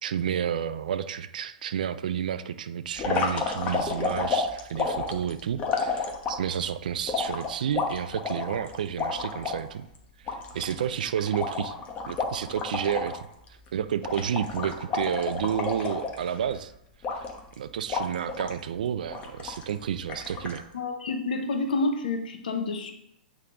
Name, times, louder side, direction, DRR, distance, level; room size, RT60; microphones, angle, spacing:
voice 1, 0.0-9.9 10.2-11.8 12.1-13.3 13.7-16.7 17.6-20.6, right 9 dB, 70° right, 12 dB, 0.4 m, -30 dB
sound 1, 3.0-6.6 7.1-9.6 10.0-10.1 10.3-13.2 13.5-13.7 14.0-16.5 17.0-17.5 17.9-18.6 19.1-19.7 20.1-20.6, left 4 dB, 30° left, 1.1 m, -30 dB
voice 2, 20.7-22.9, left 3 dB, 70° left, 5 dB, 1.0 m, -28 dB
8.4 x 3.6 x 3.7 m, 0.80 s
hypercardioid pair, 115°, 5 cm